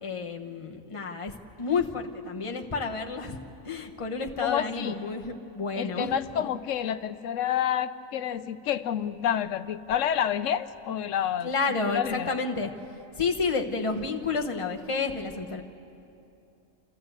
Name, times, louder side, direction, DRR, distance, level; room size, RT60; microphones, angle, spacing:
voice 1, 0.0-3.4 3.6-6.5 11.4-12.7 13.1-15.6, left 4 dB, 25° left, 2 dB, 1.1 m, -30 dB
voice 2, 4.4-5.0 5.8-11.5 11.8-12.3, left 9 dB, 70° left, 12 dB, 1.0 m, -29 dB
28.0 x 13.5 x 8.0 m, 2.7 s
omnidirectional pair, 1.4 m